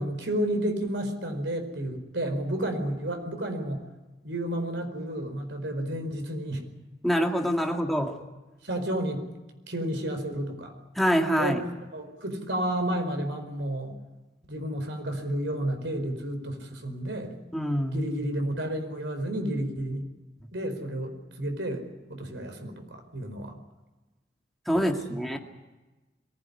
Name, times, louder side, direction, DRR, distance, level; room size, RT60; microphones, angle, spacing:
voice 1, 0.0-3.8 4.2-6.6 8.6-9.2 9.7-10.7 11.4-11.6 11.9-13.9 14.5-17.3 17.9-20.1 20.5-21.8 22.1-23.5 24.7-25.2, right 1 dB, 90° right, 6 dB, 4.8 m, -31 dB
voice 2, 7.0-8.2 11.0-11.6 17.5-18.0 24.7-25.4, equal, ahead, 2 dB, 2.1 m, -25 dB
23.0 x 16.5 x 9.9 m, 1.1 s
head